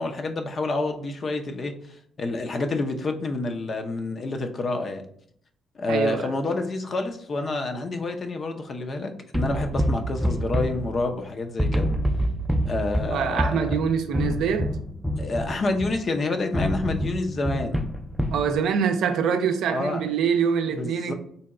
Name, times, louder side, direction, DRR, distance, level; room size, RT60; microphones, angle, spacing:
voice 1, 0.0-1.7 2.2-5.0 5.8-11.9 12.7-13.6 15.2-17.8 19.7-20.0 20.8-21.1, left 2 dB, 45° left, 0.6 m, -28 dB
voice 2, 5.9-6.3 13.1-14.7 18.3-21.1, right 7 dB, 80° right, 0.5 m, -24 dB
sound 1, 9.3-11.3 11.6-16.1 16.5-18.5, equal, 5° right, 0.4 m, -27 dB
4.0 x 2.2 x 3.6 m
cardioid pair, 90°, 0 cm